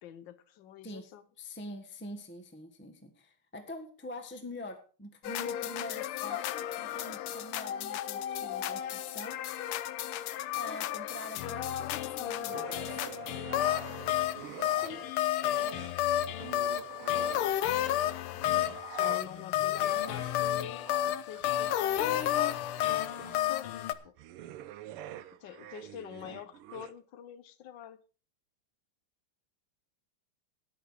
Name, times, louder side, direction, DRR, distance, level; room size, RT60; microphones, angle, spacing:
voice 1, 0.0-1.2 14.6-15.1 18.9-22.3 23.2-24.1 25.4-28.0, left 10 dB, 65° left, 1.4 m, -46 dB
voice 2, 1.4-9.4 10.3-13.1 26.2-26.3, left 1 dB, 5° left, 1.0 m, -45 dB
sound 1, 5.2-23.9, left 12 dB, 80° left, 1.6 m, -32 dB
sound 2, 12.5-15.1 15.4-17.8 18.3-26.9, right 12 dB, 85° right, 1.7 m, -47 dB
13.0 x 10.0 x 4.9 m
omnidirectional pair, 2.4 m